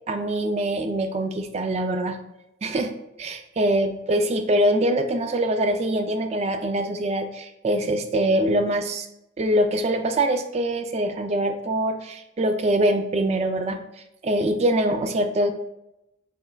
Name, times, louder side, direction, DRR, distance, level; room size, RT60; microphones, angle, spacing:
voice 1, 0.1-2.2 2.6-9.1 9.4-13.8 14.2-15.5, right 1 dB, 30° right, 7 dB, 0.3 m, -24 dB
5.4 x 3.3 x 2.2 m, 0.88 s
head